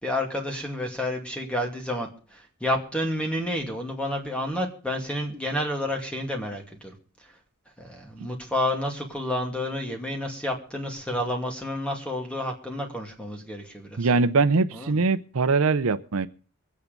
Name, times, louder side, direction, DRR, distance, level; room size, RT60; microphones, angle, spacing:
voice 1, 0.0-6.9 7.8-14.1 14.7-15.0, left 1 dB, 5° left, 2 dB, 2.4 m, -30 dB
voice 2, 14.0-16.3, right 4 dB, 70° right, 12 dB, 0.6 m, -22 dB
22.5 x 8.6 x 5.2 m, 0.38 s
head